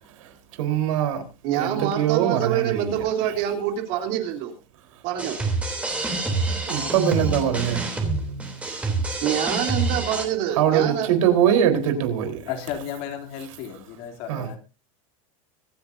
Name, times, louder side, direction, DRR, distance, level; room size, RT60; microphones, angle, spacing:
voice 1, 0.2-1.2 1.5-3.0 6.7-8.1 10.6-12.4 14.3-14.5, right 9 dB, 70° right, 4.3 m, -22 dB
voice 2, 1.4-4.6 5.0-5.4 9.2-11.1, right 10 dB, 45° right, 3.6 m, -26 dB
sound 1, 5.2-10.2, right 3 dB, 5° right, 3.3 m, -27 dB
voice 3, 12.5-14.6, left 9 dB, 45° left, 3.2 m, -33 dB
25.0 x 9.8 x 2.8 m
supercardioid pair, 170°, 18 cm